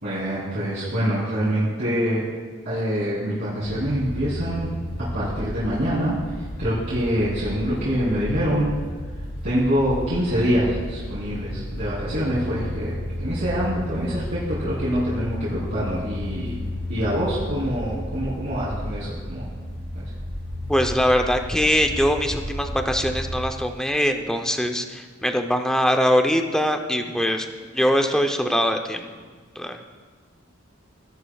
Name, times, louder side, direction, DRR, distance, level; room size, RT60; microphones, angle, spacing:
voice 1, 0.0-2.2 2.6-4.7 5.0-6.2 6.6-8.7 9.4-16.6 16.9-19.4 19.9-20.0, equal, 60° right, -11 dB, 3.1 m, -25 dB
sound 1, 3.6-23.4, equal, 60° left, 2.1 m, -32 dB
voice 2, 20.7-27.5 27.7-29.1 29.6-29.9, equal, 5° left, 4 dB, 0.6 m, -22 dB
16.5 x 11.0 x 2.4 m, 1.5 s
head